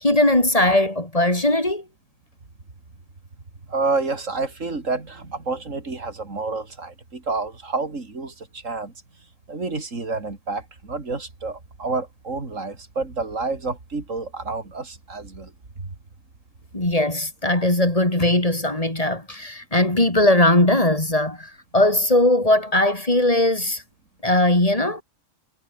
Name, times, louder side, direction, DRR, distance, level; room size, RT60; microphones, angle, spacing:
voice 1, 0.0-1.8 16.7-23.8 24.2-25.0, left 1 dB, 25° left, 3.9 m, -19 dB
voice 2, 3.7-8.9 9.5-15.5, right 3 dB, 75° right, 3.9 m, -29 dB
omnidirectional pair, 1.3 m